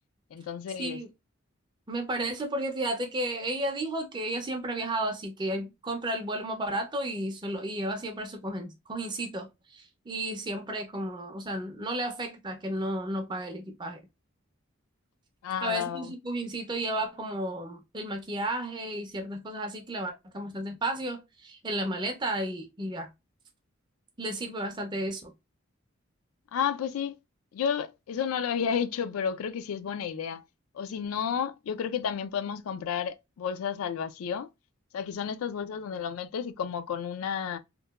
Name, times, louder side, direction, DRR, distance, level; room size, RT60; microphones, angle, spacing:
voice 1, 0.3-1.0 15.4-16.1 26.5-27.2 27.5-30.4 30.7-34.5 34.9-37.6, left 7 dB, 85° left, 0.3 m, -31 dB
voice 2, 1.9-14.0 15.6-23.1 24.2-25.3, right 1 dB, 20° right, 0.4 m, -33 dB
2.9 x 2.2 x 2.3 m
head